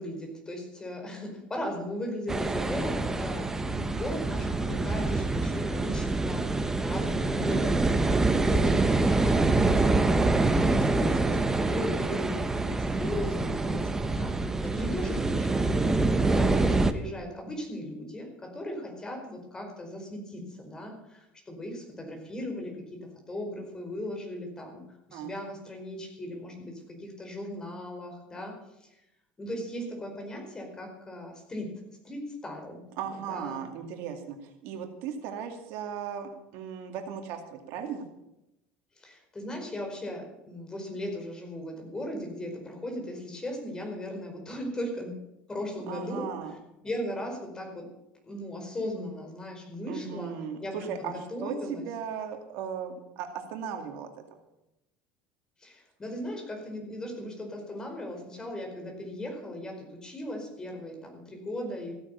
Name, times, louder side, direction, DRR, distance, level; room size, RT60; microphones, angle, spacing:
voice 1, 0.0-22.7 23.3-24.8 25.1-28.5 29.4-31.7 32.0-32.8 33.3-33.6 39.0-45.1 45.5-46.3 46.8-47.8 48.2-50.3 50.6-51.8 55.6-61.9, left 1 dB, 15° left, 2 dB, 4.8 m, -37 dB
sound 1, 2.3-16.9, right 3 dB, 10° right, 0.9 m, -26 dB
voice 2, 33.0-38.1 45.9-46.5 49.8-51.1 51.4-54.1, right 7 dB, 65° right, 5 dB, 2.3 m, -37 dB
15.5 x 9.6 x 7.0 m, 0.88 s
cardioid pair, 135°, 4 cm